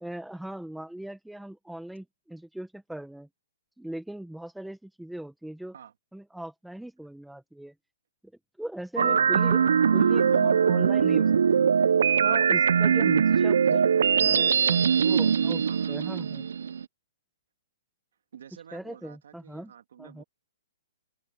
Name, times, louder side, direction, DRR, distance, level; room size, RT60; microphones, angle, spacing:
voice 1, 0.0-3.3 3.8-5.7 6.1-7.7 8.6-9.6 9.9-11.3 11.6-11.7 12.2-13.8 14.2-16.5 18.7-19.7 20.0-20.2, right 1 dB, ahead, 1.1 m, -39 dB
sound 1, 9.0-16.9, right 7 dB, 75° right, 0.4 m, -22 dB
voice 2, 10.1-10.6 13.9-14.9 15.6-16.1 18.3-20.2, right 9 dB, 60° right, 2.9 m, -48 dB
open air
hypercardioid pair, 180°, 0 cm